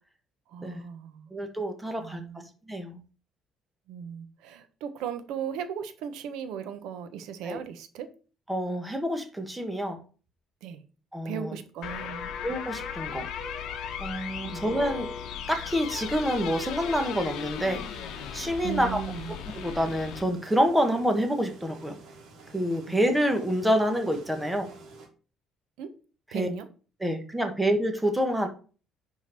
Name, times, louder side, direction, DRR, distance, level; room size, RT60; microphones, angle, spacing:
voice 1, 0.5-1.3 2.0-2.5 3.9-8.1 10.6-10.8 11.2-12.3 14.4-14.6 18.6-19.3 22.9-23.0 25.8-25.9 26.3-26.7, right 8 dB, 85° right, 10 dB, 1.0 m, -37 dB
voice 2, 1.3-2.2 2.7-3.0 7.5-7.6 8.5-10.0 11.1-11.5 12.4-13.3 14.0-15.1 15.5-17.8 18.3-19.0 19.5-22.0 22.5-24.7 26.3-26.5 27.0-28.5, equal, 5° right, 4 dB, 1.3 m, -27 dB
sound 1, 11.8-20.2, left 8 dB, 65° left, 1.0 m, -37 dB
sound 2, 15.8-25.1, right 3 dB, 65° right, 2.2 m, -49 dB
10.5 x 3.9 x 4.5 m, 0.37 s
cardioid pair, 155°, 0 cm